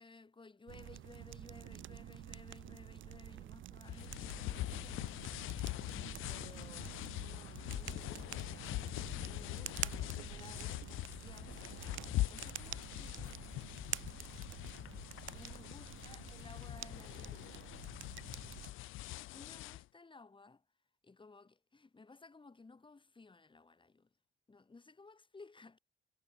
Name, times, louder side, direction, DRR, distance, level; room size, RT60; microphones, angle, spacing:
voice 1, 0.0-5.1 6.3-8.8 9.2-13.6 15.3-17.7 19.3-20.6 21.0-24.1 24.5-25.8, left 3 dB, 25° left, 3.9 m, -58 dB
sound 1, 0.7-18.7, right 13 dB, 80° right, 2.0 m, -48 dB
sound 2, 3.9-19.8, left 17 dB, 90° left, 1.1 m, -43 dB
cardioid pair, 90°, 20 cm